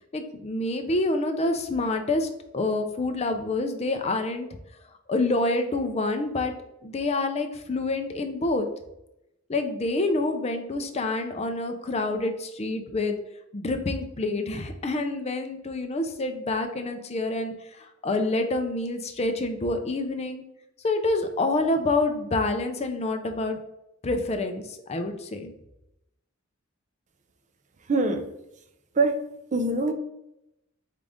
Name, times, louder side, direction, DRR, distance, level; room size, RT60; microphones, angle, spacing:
voice 1, 0.1-4.5 5.1-6.5 6.8-8.7 9.5-13.2 13.5-20.4 20.8-23.6 24.0-25.5, left 2 dB, 30° left, 6 dB, 0.5 m, -27 dB
voice 2, 27.9-28.3 29.0-29.2 29.5-29.9, right 2 dB, 35° right, 7 dB, 0.5 m, -23 dB
3.7 x 3.7 x 3.5 m, 0.85 s
head